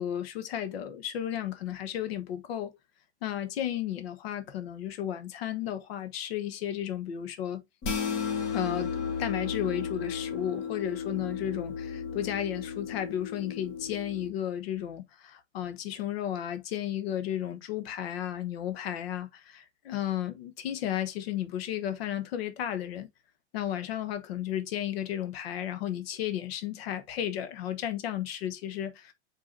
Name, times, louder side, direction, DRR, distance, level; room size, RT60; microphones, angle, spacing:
voice 1, 0.0-2.8 3.2-7.6 8.5-23.1 23.5-29.1, left 11 dB, 65° left, 1.3 m, -33 dB
sound 1, 7.8-14.3, left 6 dB, 35° left, 1.7 m, -34 dB
4.8 x 4.7 x 4.3 m
hypercardioid pair, 135°, 33 cm